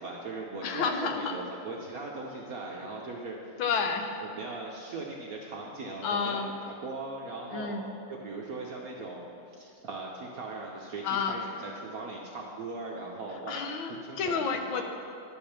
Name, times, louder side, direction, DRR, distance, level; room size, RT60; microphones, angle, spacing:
voice 1, 0.0-3.6 4.2-7.8 8.1-9.3 9.6-13.6 14.1-14.4 14.7-14.8, right 3 dB, 60° right, -1 dB, 0.9 m, -39 dB
voice 2, 0.6-1.4 3.6-4.2 6.0-6.5 7.5-7.8 11.0-11.4 13.5-14.8, left 5 dB, 70° left, 5 dB, 1.5 m, -30 dB
11.5 x 5.2 x 5.8 m, 2.6 s
omnidirectional pair, 2.3 m